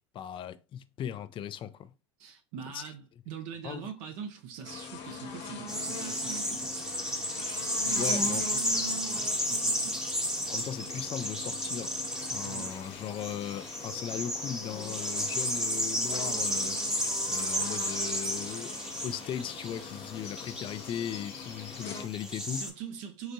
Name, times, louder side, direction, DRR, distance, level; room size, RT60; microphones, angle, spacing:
voice 1, 0.0-1.9 2.7-2.8 3.6-3.9 8.0-8.5 10.5-12.0 12.3-16.8 17.3-22.7, left 9 dB, 35° left, 0.4 m, -38 dB
voice 2, 2.2-6.9 7.8-10.0 12.4-12.7 22.5-23.3, right 8 dB, 65° right, 0.7 m, -43 dB
sound 1, 4.6-22.1, left 4 dB, 55° left, 1.3 m, -43 dB
sound 2, 5.7-22.7, equal, 5° right, 0.8 m, -33 dB
3.9 x 3.4 x 2.7 m
hypercardioid pair, 80°, 14 cm